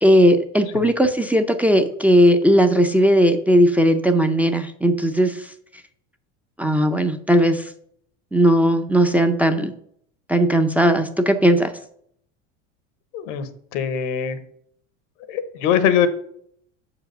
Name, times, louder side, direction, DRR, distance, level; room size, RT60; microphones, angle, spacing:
voice 1, 0.0-5.5 6.6-7.7 8.3-9.7 10.3-11.7, equal, 5° right, 5 dB, 0.6 m, -17 dB
voice 2, 13.1-14.4 15.3-16.1, left 8 dB, 75° left, 11 dB, 1.2 m, -22 dB
5.9 x 4.9 x 6.6 m, 0.66 s
supercardioid pair, 105°, 37 cm